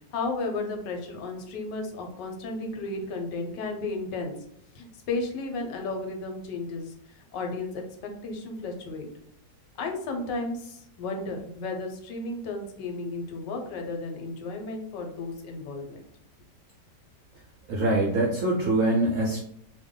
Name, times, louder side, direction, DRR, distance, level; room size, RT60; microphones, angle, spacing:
voice 1, 0.1-4.4 4.7-9.1 9.8-16.0, left 3 dB, 90° left, 3 dB, 1.3 m, -34 dB
voice 2, 17.7-19.4, right 2 dB, 70° right, -3 dB, 0.7 m, -24 dB
2.8 x 2.2 x 3.6 m, 0.68 s
omnidirectional pair, 1.9 m